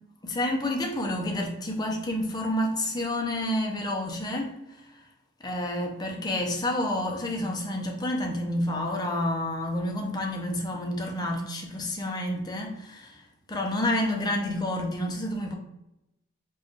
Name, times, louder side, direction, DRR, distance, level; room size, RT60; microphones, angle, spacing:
voice 1, 0.2-5.0 5.4-15.5, left 1 dB, 20° left, 0.5 m, -29 dB
4.3 x 2.3 x 3.1 m
head